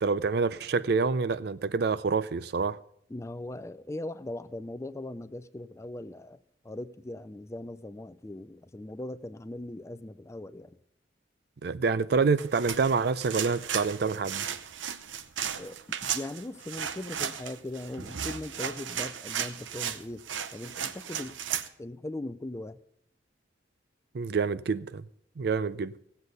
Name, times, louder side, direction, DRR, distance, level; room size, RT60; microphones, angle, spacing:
voice 1, 0.0-2.8 11.6-14.5 24.1-25.0 25.4-25.9, right 4 dB, 55° right, 0.4 m, -27 dB
voice 2, 3.1-6.4 6.6-10.8 15.6-15.8 16.1-20.3 20.5-21.4 21.8-22.8, left 1 dB, 15° left, 0.4 m, -39 dB
sound 1, 12.4-21.7, right 8 dB, 90° right, 0.7 m, -35 dB
17.5 x 8.1 x 5.3 m
head